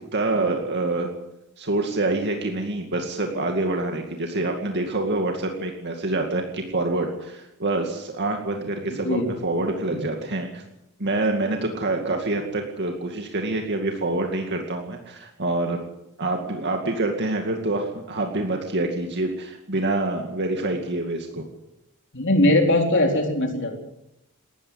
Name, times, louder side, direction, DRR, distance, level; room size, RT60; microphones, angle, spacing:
voice 1, 0.1-1.1 1.6-10.6 11.0-15.8 16.2-21.5, right 2 dB, 50° right, 3 dB, 2.3 m, -26 dB
voice 2, 22.1-23.8, left 1 dB, 55° left, 3 dB, 4.1 m, -20 dB
19.0 x 14.5 x 9.7 m, 0.88 s
head